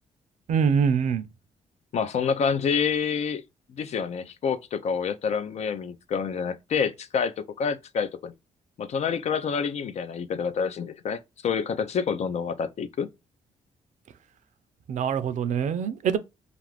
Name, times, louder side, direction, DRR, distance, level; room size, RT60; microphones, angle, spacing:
voice 1, 0.5-1.3 14.9-16.2, right 7 dB, 65° right, 0.5 m, -24 dB
voice 2, 1.9-3.4 3.8-8.3 8.8-13.1, left 6 dB, 55° left, 0.4 m, -28 dB
2.5 x 2.4 x 3.2 m
cardioid pair, 90°, 14 cm